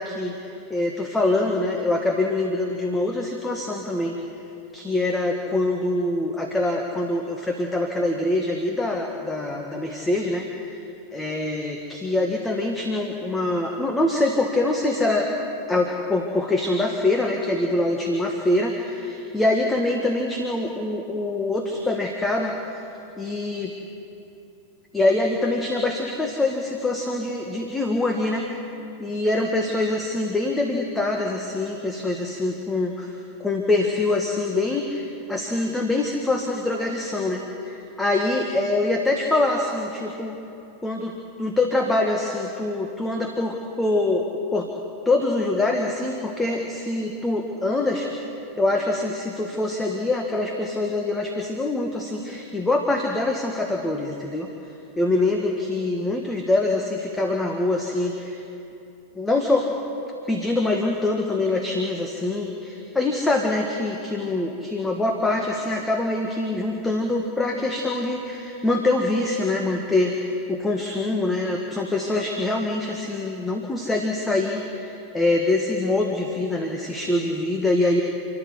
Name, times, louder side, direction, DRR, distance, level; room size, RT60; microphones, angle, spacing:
voice 1, 0.0-4.1 4.7-10.8 11.1-15.3 15.7-22.9 23.2-23.7 24.9-28.5 29.0-40.4 40.8-44.7 45.1-48.1 48.6-54.5 55.0-58.4 59.2-59.7 60.3-78.0, left 2 dB, 10° left, 2 dB, 1.9 m, -24 dB
29.0 x 11.5 x 8.3 m, 2.8 s
figure-of-eight pair, 90°, 0 cm